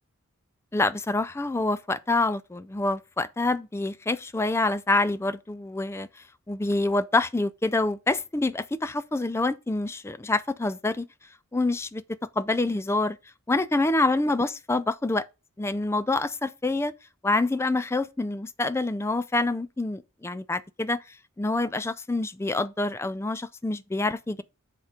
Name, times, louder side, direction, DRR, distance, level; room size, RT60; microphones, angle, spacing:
voice 1, 0.7-6.1 6.5-11.1 11.5-12.0 12.4-13.2 13.5-15.2 15.6-16.9 17.2-21.0 21.4-24.4, left 2 dB, 10° left, 0.3 m, -26 dB
7.8 x 3.6 x 5.1 m
head